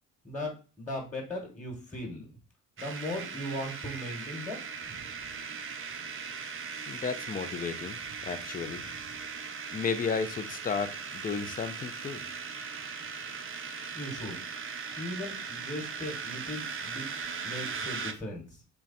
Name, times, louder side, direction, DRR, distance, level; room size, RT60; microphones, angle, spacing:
voice 1, 0.2-2.3 2.8-5.0 13.9-14.4 15.0-17.1 17.4-18.6, left 1 dB, 5° left, 1.3 m, -38 dB
sound 1, 2.8-18.1, right 5 dB, 30° right, 0.6 m, -39 dB
voice 2, 6.9-8.8 9.7-12.2, left 5 dB, 20° left, 0.5 m, -33 dB
3.4 x 2.3 x 4.0 m
hypercardioid pair, 60°, 42 cm